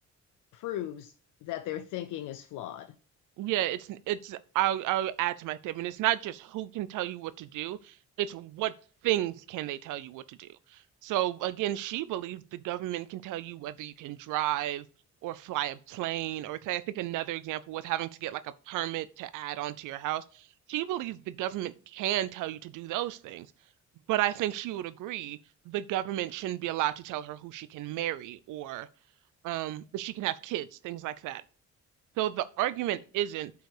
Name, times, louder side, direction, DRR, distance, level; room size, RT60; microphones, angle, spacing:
voice 1, 0.5-1.1 1.4-2.9, left 13 dB, 85° left, 0.6 m, -37 dB
voice 2, 3.4-8.7 9.0-14.8 15.2-18.4 18.7-23.5 24.1-25.4 25.7-28.9 29.4-31.4 32.2-33.5, right 14 dB, 85° right, 0.5 m, -32 dB
7.9 x 4.7 x 4.9 m
cardioid pair, 90°, 30 cm